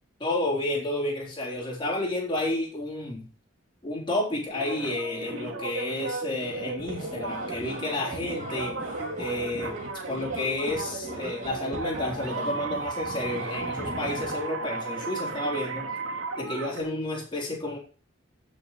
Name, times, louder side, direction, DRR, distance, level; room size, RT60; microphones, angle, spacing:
voice 1, 0.2-3.3 3.8-9.8 10.1-15.9 16.4-17.8, left 1 dB, 25° left, -3 dB, 3.9 m, -31 dB
sound 1, 4.5-16.8, right 3 dB, 80° right, 2.5 m, -35 dB
sound 2, 6.8-14.4, right 1 dB, 35° right, 2.8 m, -40 dB
15.5 x 6.3 x 3.2 m, 0.39 s
head